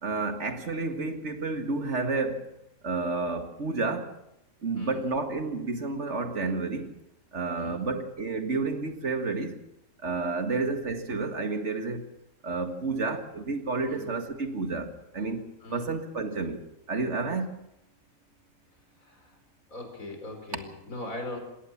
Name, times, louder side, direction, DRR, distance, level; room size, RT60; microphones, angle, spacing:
voice 1, 0.0-2.5 2.8-4.1 4.6-6.9 7.3-9.6 10.0-12.1 12.4-15.4 15.7-16.6 16.9-17.5, right 3 dB, 55° right, 2.1 m, -30 dB
voice 2, 7.6-7.9 10.4-10.6 13.9-14.1 15.6-15.9 19.0-19.3 19.7-21.4, left 2 dB, 80° left, 5.0 m, -40 dB
21.5 x 17.0 x 7.3 m
omnidirectional pair, 1.4 m